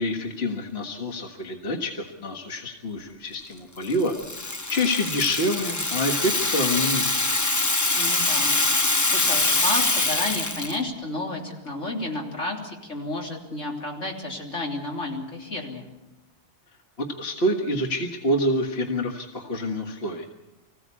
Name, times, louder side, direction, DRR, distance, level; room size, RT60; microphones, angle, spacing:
voice 1, 0.0-7.1 17.0-20.3, left 1 dB, 60° left, 2 dB, 1.9 m, -27 dB
Rattle (instrument), 3.8-10.8, left 2 dB, 20° left, 0.6 m, -24 dB
voice 2, 8.0-8.6 9.1-15.9, left 2 dB, 85° left, -1 dB, 3.8 m, -31 dB
25.0 x 16.0 x 8.3 m, 1.0 s
omnidirectional pair, 1.2 m